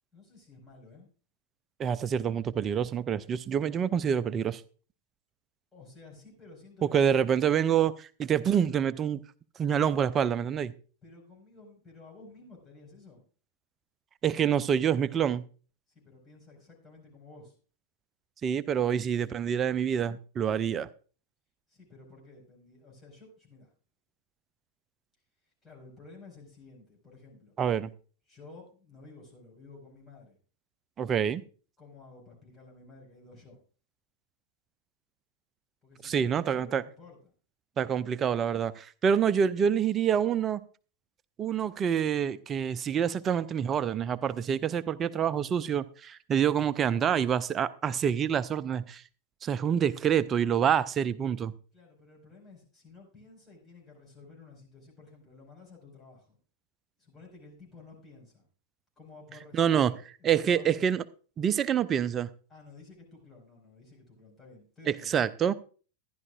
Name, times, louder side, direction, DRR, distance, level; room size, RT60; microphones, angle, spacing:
voice 1, 0.1-1.1 5.7-7.4 11.0-13.2 15.9-17.5 21.7-23.7 25.6-27.6 28.3-30.4 31.8-33.6 35.8-37.3 51.7-56.4 57.0-58.4 59.0-60.9 62.5-65.2, left 3 dB, 15° left, -3 dB, 5.0 m, -53 dB
voice 2, 1.8-4.6 6.9-9.2 9.6-10.7 14.2-15.4 18.4-20.9 27.6-27.9 31.0-31.4 36.0-36.8 37.8-40.6 41.4-49.0 49.4-51.5 59.5-59.9 60.2-61.0 61.4-62.3 64.9-65.5, right 8 dB, 25° right, 17 dB, 0.5 m, -27 dB
15.0 x 11.0 x 2.4 m, 0.39 s
figure-of-eight pair, 90°, 0 cm